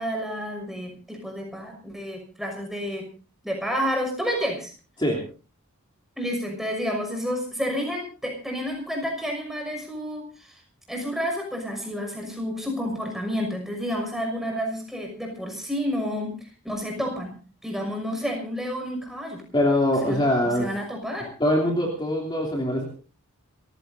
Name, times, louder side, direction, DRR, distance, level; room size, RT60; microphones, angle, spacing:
voice 1, 0.0-3.1 3.4-4.7 6.2-10.6 10.9-17.4 17.6-19.4 20.0-21.3, equal, ahead, 2 dB, 6.0 m, -30 dB
voice 2, 19.5-20.7 21.4-22.8, left 1 dB, 20° left, 0 dB, 3.0 m, -23 dB
29.5 x 15.5 x 2.7 m, 0.36 s
head